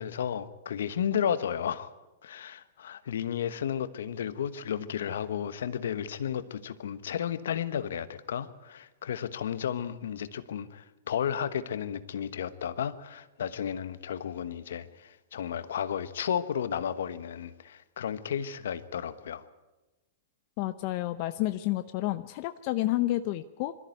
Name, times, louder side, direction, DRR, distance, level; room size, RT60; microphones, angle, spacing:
voice 1, 0.0-1.9 2.2-19.5, left 8 dB, 75° left, 13 dB, 1.1 m, -33 dB
voice 2, 20.6-23.7, left 16 dB, 50° left, 11 dB, 0.7 m, -30 dB
22.0 x 14.0 x 9.3 m, 1.1 s
hypercardioid pair, 115°, 0 cm